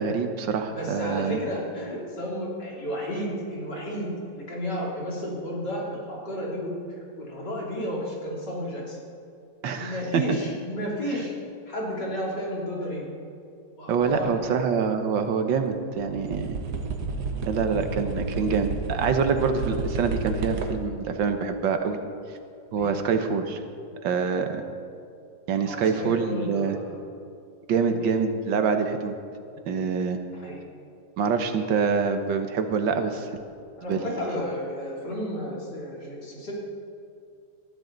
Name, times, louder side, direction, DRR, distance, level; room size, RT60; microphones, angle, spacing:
voice 1, 0.0-1.4 9.6-10.2 13.9-16.6 17.5-22.0 22.7-23.6 24.0-24.6 25.5-26.8 27.7-29.1 29.7-30.2 31.2-33.3 33.9-34.1, right 5 dB, 75° right, 7 dB, 1.7 m, -25 dB
voice 2, 0.8-6.7 7.2-9.0 9.7-11.3 11.7-13.0 13.8-14.6 22.8-23.0 25.6-27.0 27.7-28.1 30.3-30.6 33.8-36.5, equal, 60° left, -4 dB, 3.8 m, -32 dB
sound 1, 14.0-14.3 15.7-15.8 16.0-21.0 22.8-22.9, right 3 dB, 60° right, 1.6 m, -32 dB
20.0 x 13.5 x 3.9 m, 2.5 s
omnidirectional pair, 2.0 m